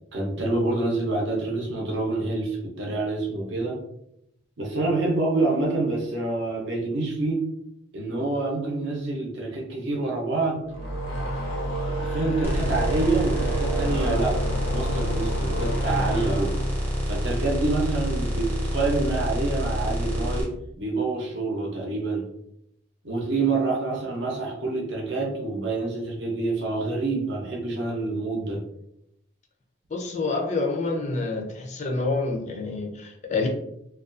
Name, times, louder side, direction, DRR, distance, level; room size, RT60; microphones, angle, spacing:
voice 1, 0.1-3.8 4.6-7.4 7.9-10.6 11.9-14.4 14.7-16.6 17.1-22.3 23.0-28.6, right 2 dB, 65° right, 0 dB, 0.6 m, -27 dB
sound 1, 10.6-18.0, right 1 dB, 85° left, 0.7 m, -30 dB
sound 2, 12.4-20.4, equal, 10° right, 0.6 m, -27 dB
voice 2, 29.9-33.5, left 3 dB, 35° left, 2 dB, 0.4 m, -27 dB
2.3 x 2.3 x 2.5 m, 0.77 s
head